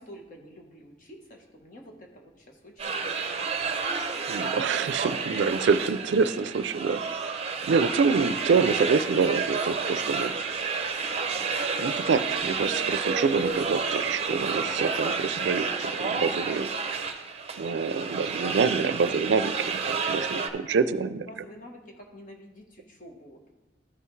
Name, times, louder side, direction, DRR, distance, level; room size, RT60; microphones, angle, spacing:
voice 1, 0.0-4.0 4.8-5.1 21.3-23.5, equal, 45° left, 1 dB, 1.2 m, -49 dB
sound 1, 2.8-20.5, right 5 dB, 35° right, 0.6 m, -30 dB
voice 2, 4.3-10.3 11.8-16.7 17.5-21.3, right 5 dB, 85° right, 14 dB, 0.4 m, -26 dB
13.5 x 5.6 x 3.2 m, 1.1 s
head